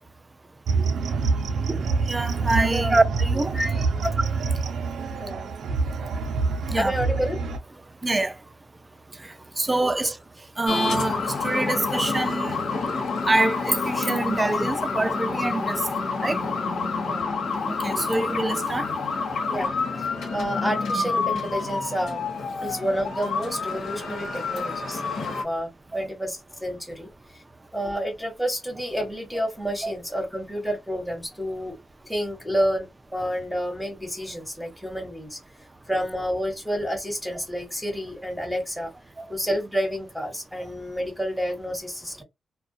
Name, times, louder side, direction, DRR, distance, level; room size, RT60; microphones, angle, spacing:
sound 1, 0.7-7.6, right 4 dB, 80° right, 0.5 m, -26 dB
voice 1, 1.7-3.6 6.7-6.9 8.0-8.3 9.6-10.2 10.6-12.6 13.2-15.8 16.2-16.4 17.8-18.9 25.9-26.0 29.8-29.9 39.2-39.3, right 2 dB, 20° right, 0.4 m, -25 dB
voice 2, 2.6-3.0 3.5-3.8 5.2-5.5 6.7-7.4 9.7-9.8 17.0-17.3 19.5-22.2 22.6-27.4 27.7-31.7 32.1-35.4 35.9-38.9 39.3-42.2, equal, 5° left, 1.1 m, -29 dB
sound 2, 10.7-25.4, left 4 dB, 85° left, 1.1 m, -28 dB
2.4 x 2.1 x 2.6 m
cardioid pair, 110°, 0 cm